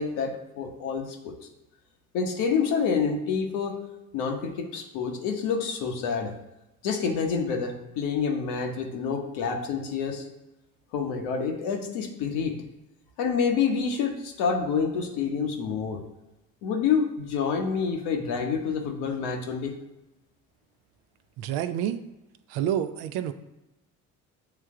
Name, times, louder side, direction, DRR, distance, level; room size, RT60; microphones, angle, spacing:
voice 1, 0.0-1.3 2.1-3.7 4.1-6.3 6.8-10.3 10.9-12.5 13.2-16.0 16.6-19.7, left 6 dB, 80° left, 3 dB, 1.1 m, -28 dB
voice 2, 21.4-22.0 22.5-23.3, right 10 dB, 75° right, 10 dB, 0.6 m, -28 dB
7.9 x 3.3 x 3.7 m, 0.98 s
hypercardioid pair, 60°, 39 cm